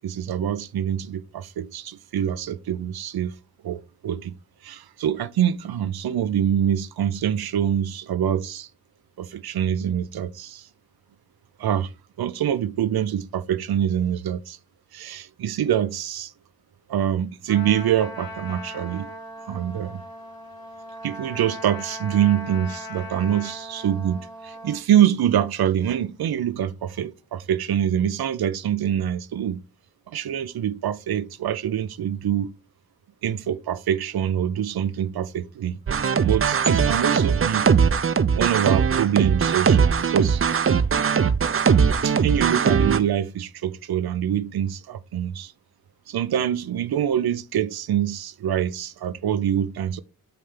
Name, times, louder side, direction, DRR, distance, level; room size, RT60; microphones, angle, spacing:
voice 1, 0.0-3.3 3.6-4.3 4.6-8.7 9.2-10.7 11.6-11.9 12.2-14.6 14.9-16.3 16.9-19.1 19.5-20.0 21.0-29.6 30.1-32.5 33.2-35.8 36.2-37.7 38.4-40.4 41.5-45.5 46.1-50.0, right 10 dB, 90° right, 0.7 m, -25 dB
Trumpet, 17.5-24.8, equal, 75° left, 2.8 m, -39 dB
sound 1, 35.9-43.0, right 6 dB, 35° right, 0.6 m, -20 dB
8.0 x 3.3 x 5.7 m
cardioid pair, 65°, 36 cm